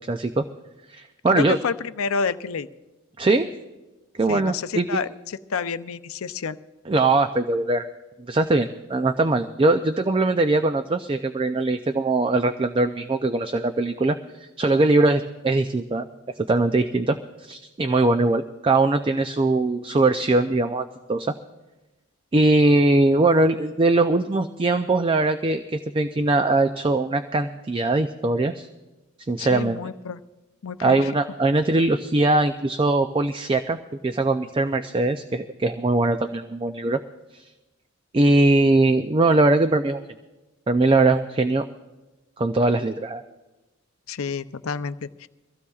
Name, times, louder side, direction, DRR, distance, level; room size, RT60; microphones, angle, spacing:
voice 1, 0.1-0.4 0.9-1.6 3.2-3.5 4.2-4.9 6.9-7.9 8.3-16.1 16.4-21.3 22.3-28.7 29.3-29.8 30.8-33.8 34.0-37.0 37.3-37.4 38.1-40.0 40.7-41.6 42.4-43.2, right 2 dB, 25° right, 8 dB, 0.4 m, -21 dB
voice 2, 1.3-2.7 4.3-6.6 29.4-30.2 30.6-31.1 44.1-45.3, left 5 dB, 80° left, 12 dB, 0.5 m, -29 dB
23.5 x 15.5 x 2.4 m, 1.1 s
head